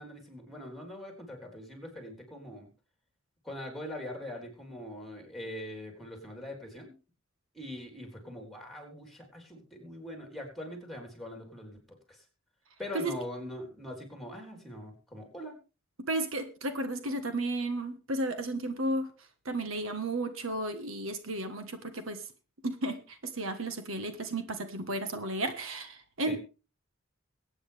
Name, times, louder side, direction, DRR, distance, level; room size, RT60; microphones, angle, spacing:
voice 1, 0.0-2.7 3.4-6.9 7.5-11.8 12.1-12.2 12.8-15.6 26.2-26.4, left 1 dB, ahead, 3 dB, 4.0 m, -42 dB
voice 2, 16.1-19.1 19.4-22.2 22.6-26.4, right 2 dB, 75° right, 9 dB, 1.5 m, -33 dB
22.5 x 9.1 x 3.5 m, 0.32 s
head